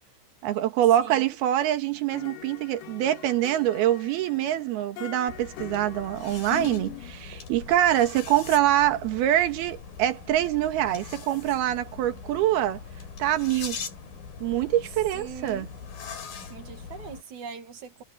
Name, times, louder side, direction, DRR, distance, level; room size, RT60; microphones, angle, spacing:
voice 1, 0.4-12.8 13.2-13.8 14.4-15.7, right 12 dB, 70° right, 3.2 m, -25 dB
voice 2, 1.0-1.4 15.1-15.7 16.5-18.0, right 7 dB, 50° right, 2.9 m, -41 dB
sound 1, 2.1-7.1, left 14 dB, 75° left, 3.4 m, -42 dB
sound 2, 5.3-17.2, left 6 dB, 55° left, 5.1 m, -41 dB
omnidirectional pair, 5.0 m